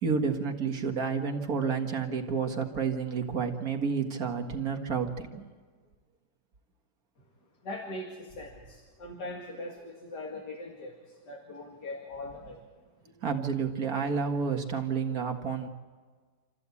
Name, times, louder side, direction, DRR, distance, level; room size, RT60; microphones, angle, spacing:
voice 1, 0.0-5.4 13.2-15.7, right 5 dB, 55° right, 4 dB, 2.1 m, -30 dB
voice 2, 7.6-12.6, left 2 dB, 70° left, 1 dB, 2.7 m, -41 dB
28.0 x 14.0 x 8.4 m, 1.5 s
omnidirectional pair, 1.9 m